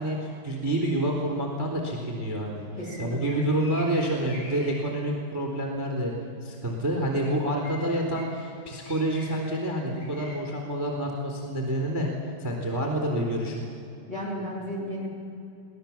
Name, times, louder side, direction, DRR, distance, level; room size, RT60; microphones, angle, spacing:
voice 1, 0.0-2.7 3.0-6.1 6.4-12.1 12.4-13.6, right 1 dB, 5° right, 1 dB, 2.6 m, -28 dB
sound 1, 2.8-4.7 7.2-7.3 7.6-8.2 8.8-9.5 9.9-10.4, left 1 dB, 85° left, 7.7 m, -45 dB
voice 2, 2.8-3.4 14.1-15.1, equal, 25° left, -1 dB, 2.9 m, -34 dB
24.0 x 18.0 x 7.4 m, 2.8 s
omnidirectional pair, 5.9 m